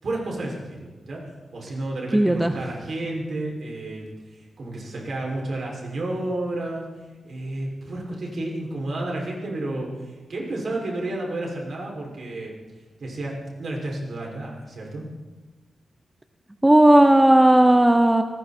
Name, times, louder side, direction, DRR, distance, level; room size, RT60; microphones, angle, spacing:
voice 1, 0.0-6.8 7.2-12.5 13.0-15.1, right 2 dB, 55° right, -1 dB, 6.4 m, -31 dB
voice 2, 2.1-2.5 16.6-18.2, right 1 dB, 10° right, 6 dB, 0.9 m, -15 dB
29.5 x 19.5 x 4.5 m, 1.2 s
wide cardioid pair, 160°, 0 cm